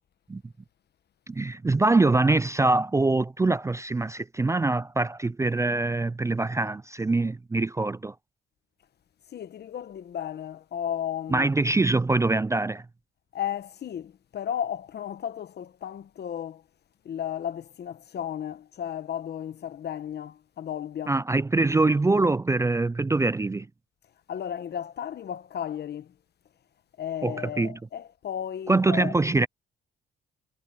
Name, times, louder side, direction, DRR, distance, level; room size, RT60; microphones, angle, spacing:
voice 1, 1.3-8.1 11.3-12.8 21.1-23.7 27.2-27.8 28.7-29.5, right 3 dB, 15° right, 0.4 m, -24 dB
voice 2, 9.3-11.5 13.3-16.6 17.0-21.2 24.3-26.1 27.0-29.1, left 9 dB, 55° left, 1.1 m, -34 dB
cardioid pair, 90°, 20 cm